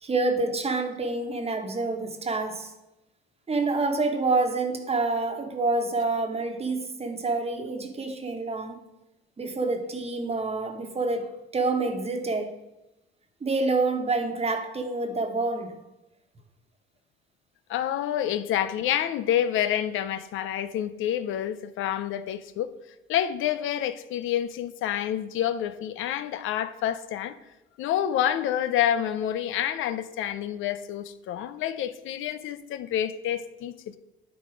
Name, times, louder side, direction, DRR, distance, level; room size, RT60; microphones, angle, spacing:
voice 1, 0.0-2.7 3.5-8.8 9.4-12.6 13.4-15.7, right 3 dB, 30° right, 1.2 m, -27 dB
voice 2, 17.7-22.7 23.1-27.3 27.8-34.0, left 10 dB, 85° left, 0.5 m, -28 dB
10.5 x 4.1 x 5.0 m
cardioid pair, 90°, 20 cm